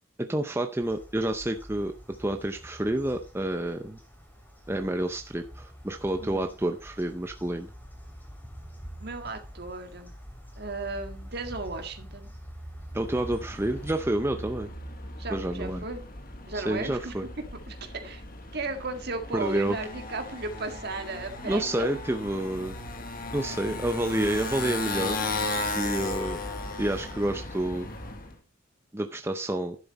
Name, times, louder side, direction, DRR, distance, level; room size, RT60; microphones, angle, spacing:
voice 1, 0.2-1.9 2.2-4.0 4.7-7.7 12.9-14.7 15.3-15.8 16.5-17.3 19.3-19.8 21.4-22.8 23.3-25.2 25.7-26.4 26.8-27.9 28.9-29.8, right 1 dB, 15° right, 5 dB, 0.6 m, -29 dB
sound 1, 0.8-14.0, equal, 10° left, 2.8 m, -45 dB
voice 2, 6.2-6.5 9.0-10.1 10.6-12.3 15.2-16.0 16.5-17.1 17.7-18.2 18.5-21.9 23.5-23.6, right 3 dB, 55° right, 6 dB, 1.7 m, -35 dB
Motorcycle, 13.0-28.3, left 2 dB, 45° left, 1.5 m, -36 dB
10.5 x 7.6 x 4.1 m, 0.33 s
head